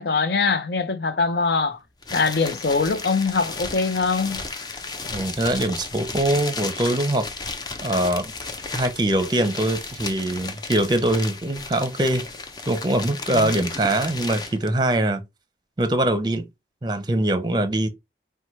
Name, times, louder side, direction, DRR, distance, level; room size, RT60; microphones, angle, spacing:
voice 1, 0.0-1.8 2.1-4.4 13.3-13.5, left 4 dB, 70° left, 0.7 m, -23 dB
sound 1, 2.0-14.7, left 3 dB, 25° left, 0.5 m, -34 dB
voice 2, 5.1-7.3 7.8-8.3 8.7-12.3 12.7-15.2 15.8-16.4 16.8-17.9, right 1 dB, 25° right, 0.6 m, -23 dB
4.3 x 2.2 x 4.5 m
head